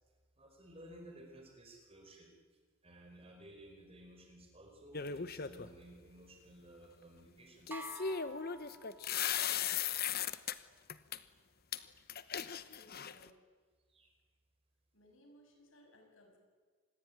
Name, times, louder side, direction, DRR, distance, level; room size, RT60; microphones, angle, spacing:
voice 1, 0.4-2.3 2.8-7.8 11.2-11.4 13.9-14.1, right 1 dB, 25° right, 3 dB, 5.0 m, -56 dB
sound 1, 4.9-5.7 7.7-10.5 10.9-11.2 11.7-11.8 12.1-13.3, left 8 dB, 45° left, 1.1 m, -37 dB
sound 2, 7.7-9.5, right 2 dB, 10° right, 2.1 m, -50 dB
voice 2, 12.7-13.4 14.9-16.4, equal, 65° left, 3 dB, 7.0 m, -63 dB
26.5 x 20.5 x 9.5 m, 1.5 s
head